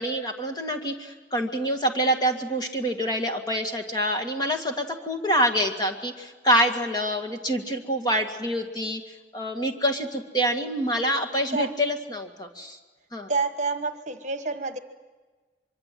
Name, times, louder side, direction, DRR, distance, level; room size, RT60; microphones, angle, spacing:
voice 1, 0.0-9.0 9.3-12.8 13.1-13.3, equal, 25° left, 4 dB, 2.0 m, -26 dB
voice 2, 13.3-14.8, right 4 dB, 45° right, 9 dB, 1.3 m, -28 dB
24.0 x 24.0 x 7.7 m, 1.3 s
head